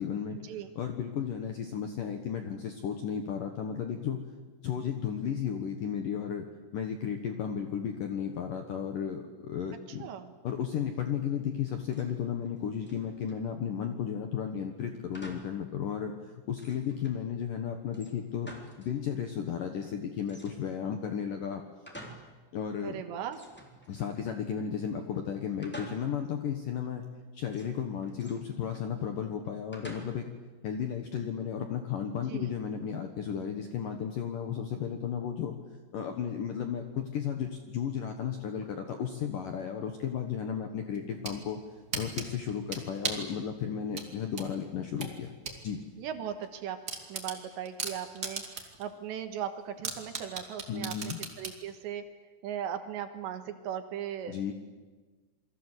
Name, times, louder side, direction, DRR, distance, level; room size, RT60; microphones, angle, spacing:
voice 1, 0.0-0.4 0.8-4.2 4.6-6.5 6.7-10.1 10.4-18.5 18.8-21.6 22.5-23.0 23.9-27.0 27.3-30.3 30.6-35.6 35.9-41.6 41.9-45.3 45.6-45.8 50.7-51.2 54.3-54.5, left 8 dB, 65° left, 5 dB, 2.2 m, -34 dB
voice 2, 10.0-10.3 22.8-23.4 32.3-32.5 46.0-46.8 47.1-52.1 52.4-54.5, right 9 dB, 70° right, 8 dB, 3.3 m, -38 dB
sound 1, 11.6-12.2 12.4-13.5 15.1-15.6 16.0-16.1 16.5-17.2 17.9-19.0 19.2-19.3 20.3-20.9 21.4-22.4 22.7-22.8 23.3-24.4 25.6-26.3 27.5-28.9 29.7-30.4, right 1 dB, 5° left, 2.5 m, -49 dB
sound 2, 40.9-41.4 41.9-43.3 43.9-45.6 46.0-46.1 46.4-46.5 46.9-48.8 49.2-49.3 49.8-51.6, right 4 dB, 30° right, 1.9 m, -36 dB
28.0 x 22.5 x 8.2 m, 1.3 s
omnidirectional pair, 5.8 m